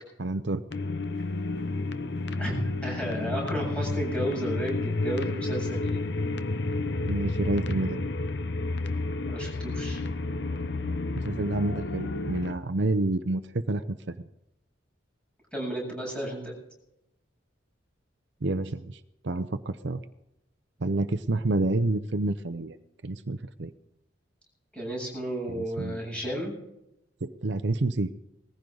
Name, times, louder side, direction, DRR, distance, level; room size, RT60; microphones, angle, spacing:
voice 1, 0.2-0.6 7.1-8.1 11.2-14.1 18.4-20.0 20.8-22.8 23.0-23.7 25.5-26.0 27.2-28.1, right 2 dB, 65° right, 10 dB, 0.7 m, -29 dB
sound 1, 0.7-12.6, left 2 dB, 60° left, 0.8 m, -31 dB
voice 2, 2.8-6.0 9.3-10.0 15.5-16.5 24.7-26.6, right 1 dB, 5° left, -2 dB, 7.8 m, -33 dB
20.0 x 15.5 x 4.0 m, 0.86 s
head